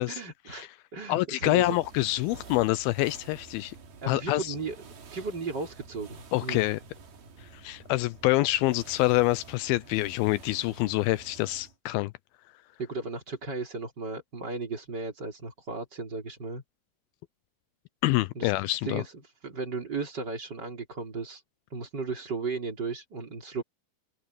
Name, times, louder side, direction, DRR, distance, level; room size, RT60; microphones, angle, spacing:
voice 1, 0.1-1.8 4.0-4.8 5.1-6.6 12.8-16.6 18.3-18.5 18.8-19.1 19.4-21.4 21.7-23.6, right 4 dB, 25° right, 4.0 m, -35 dB
voice 2, 1.1-3.8 4.1-4.6 6.3-6.8 7.4-12.1 18.0-19.0, left 18 dB, 80° left, 2.3 m, -26 dB
sound 1, 1.5-11.8, right 4 dB, 70° right, 5.4 m, -50 dB
open air
omnidirectional pair, 4.5 m